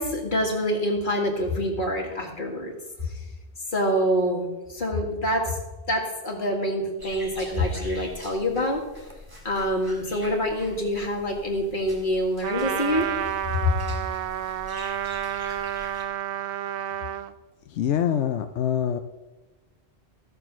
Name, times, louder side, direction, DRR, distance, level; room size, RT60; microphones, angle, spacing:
voice 1, 0.0-2.7 3.1-3.2 3.7-5.6 5.9-8.8 9.4-13.1, equal, 50° left, 0 dB, 2.1 m, -26 dB
sound 1, 7.0-16.0, equal, 20° right, 1.8 m, -45 dB
Trumpet, 12.4-17.3, right 10 dB, 65° right, 0.7 m, -30 dB
voice 2, 17.7-19.0, left 9 dB, 85° left, 8 dB, 0.9 m, -25 dB
13.5 x 6.8 x 6.0 m, 1.1 s
omnidirectional pair, 1.1 m